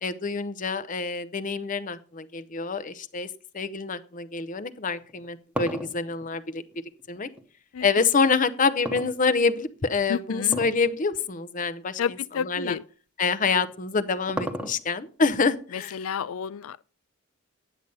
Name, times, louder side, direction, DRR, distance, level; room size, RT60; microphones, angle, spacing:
voice 1, 0.0-3.3 3.5-6.6 7.1-7.3 7.8-12.8 13.2-16.0, left 4 dB, 40° left, 0.7 m, -26 dB
sound 1, 5.0-7.5 8.8-9.7 10.4-10.9 11.2-11.3 12.1-12.2 13.6-15.1, equal, 5° right, 1.0 m, -34 dB
voice 2, 10.1-10.6 12.0-12.8 15.9-16.8, left 7 dB, 85° left, 0.4 m, -30 dB
10.0 x 7.9 x 5.4 m
head